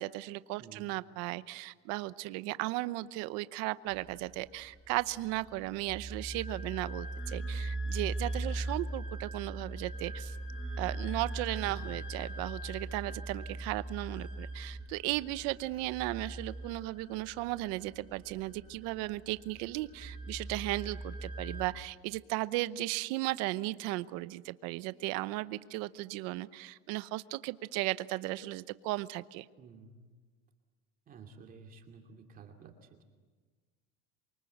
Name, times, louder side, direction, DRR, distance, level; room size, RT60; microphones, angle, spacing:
voice 1, 0.0-10.4 10.8-29.5, right 18 dB, 55° right, 15 dB, 0.9 m, -36 dB
sound 1, 3.9-21.7, right 2 dB, 15° left, 7.9 m, -40 dB
voice 2, 11.7-12.0 29.6-29.9 31.1-33.0, right 5 dB, 30° right, 3 dB, 2.6 m, -52 dB
28.0 x 24.0 x 8.0 m, 1.4 s
supercardioid pair, 155°, 31 cm